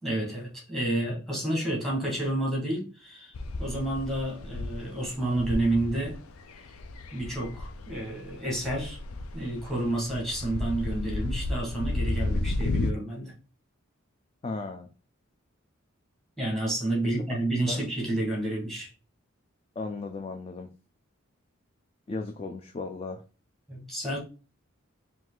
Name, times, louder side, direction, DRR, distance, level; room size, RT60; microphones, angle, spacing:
voice 1, 0.0-6.2 6.6-6.7 7.1-9.0 9.3-13.3 16.4-18.9 23.7-24.2, right 1 dB, ahead, 1.5 m, -30 dB
sound 1, 3.3-12.9, left 2 dB, 85° left, 0.5 m, -33 dB
voice 2, 14.4-14.9 17.7-17.8 19.8-20.7 22.1-23.2, left 3 dB, 25° left, 0.4 m, -35 dB
4.5 x 2.6 x 3.8 m
head